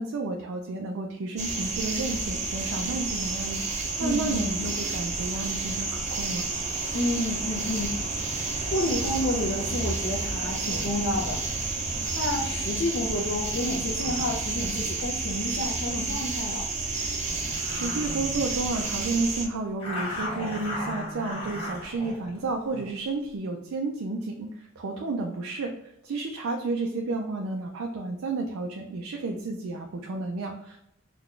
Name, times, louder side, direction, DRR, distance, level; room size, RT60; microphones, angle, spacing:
voice 1, 0.0-6.4 17.4-30.8, right 3 dB, 85° right, 2 dB, 0.4 m, -31 dB
sound 1, 1.4-19.5, right 3 dB, 35° right, 0.5 m, -30 dB
voice 2, 4.0-4.8 6.9-8.3 8.7-11.4 12.1-16.7 19.2-19.3, left 1 dB, 55° left, -2 dB, 0.5 m, -30 dB
sound 2, 11.2-11.5 12.1-16.3 16.8-16.9 17.3-19.2 19.8-23.0, left 1 dB, 25° left, 1.2 m, -38 dB
3.9 x 2.3 x 3.1 m, 0.81 s
head